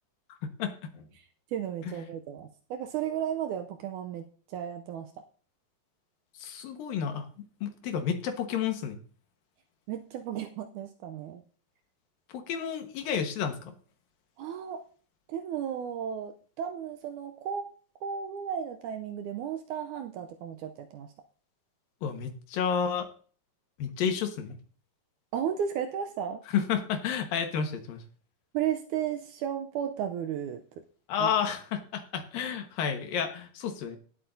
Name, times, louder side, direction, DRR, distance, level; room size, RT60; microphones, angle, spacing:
voice 1, 0.4-1.0 6.4-7.3 7.6-9.0 12.3-13.7 22.0-23.1 23.8-24.6 26.5-28.0 31.1-34.0, left 7 dB, 80° left, 6 dB, 3.1 m, -31 dB
voice 2, 1.5-5.1 9.9-11.4 14.4-14.8 15.3-17.7 18.0-21.1 25.3-26.4 28.5-30.6 31.2-31.3, right 9 dB, 80° right, 7 dB, 1.9 m, -34 dB
18.0 x 8.1 x 2.7 m, 0.43 s
omnidirectional pair, 4.1 m